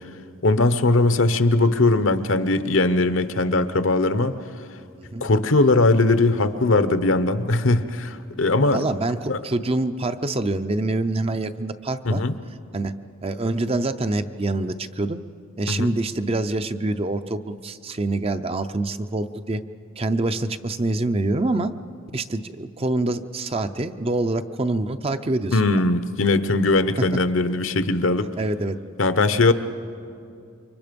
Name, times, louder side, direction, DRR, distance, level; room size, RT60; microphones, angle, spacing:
voice 1, 0.4-4.3 5.2-8.8 9.3-9.4 12.0-12.3 15.7-15.9 25.5-28.3 29.0-29.5, left 2 dB, 65° left, 11 dB, 0.9 m, -20 dB
voice 2, 8.7-12.2 12.7-12.9 13.2-15.2 15.6-19.6 20.0-21.7 22.1-25.8 27.0-27.1 28.4-28.8, right 2 dB, 30° right, 10 dB, 0.6 m, -25 dB
29.0 x 24.5 x 5.3 m, 2.5 s
head